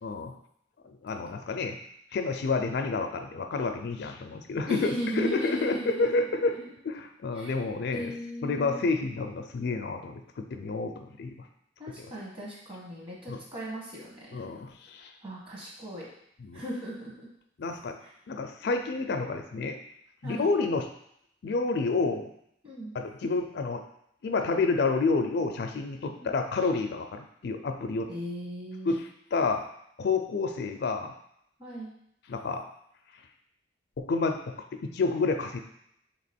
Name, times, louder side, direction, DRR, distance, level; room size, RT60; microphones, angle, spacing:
voice 1, 0.0-0.3 0.8-1.8 2.1-6.5 6.8-8.1 8.4-11.3 12.0-12.1 13.3-13.4 14.3-15.1 16.4-16.6 17.6-18.0 18.3-19.8 20.2-20.9 21.4-22.3 22.9-23.8 24.2-28.1 28.9-29.6 30.0-31.1 32.3-32.6 34.0-34.5 34.8-35.6, left 3 dB, 60° left, 5 dB, 0.4 m, -29 dB
voice 2, 4.7-6.6 7.3-7.5 7.9-8.9 11.8-14.4 15.2-16.0 16.5-17.3 18.0-18.1 20.2-20.5 22.6-23.0 26.2-26.3 28.1-29.0 31.6-31.9, equal, 30° right, -5 dB, 1.2 m, -37 dB
3.3 x 3.0 x 4.2 m, 0.73 s
head